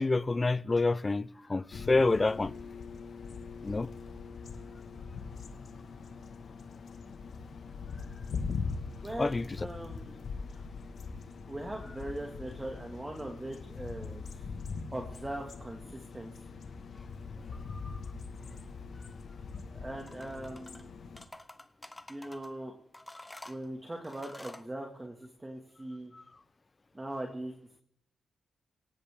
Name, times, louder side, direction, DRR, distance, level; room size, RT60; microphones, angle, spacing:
voice 1, 0.0-2.5 3.6-3.9 9.2-9.7 17.7-18.0 26.1-26.2, left 3 dB, 30° left, 0.6 m, -28 dB
sound 1, 1.7-21.2, left 4 dB, 65° left, 1.6 m, -42 dB
voice 2, 9.6-10.2 10.5-10.6 11.5-14.2 14.9-16.3 19.7-20.9 22.1-22.7 23.5-26.1 26.9-27.5, right 1 dB, 20° right, 2.1 m, -40 dB
sound 2, 20.0-20.8 21.2-22.5 22.9-24.7, left 1 dB, 10° left, 1.0 m, -49 dB
17.0 x 16.5 x 3.7 m
cardioid pair, 75°, 0 cm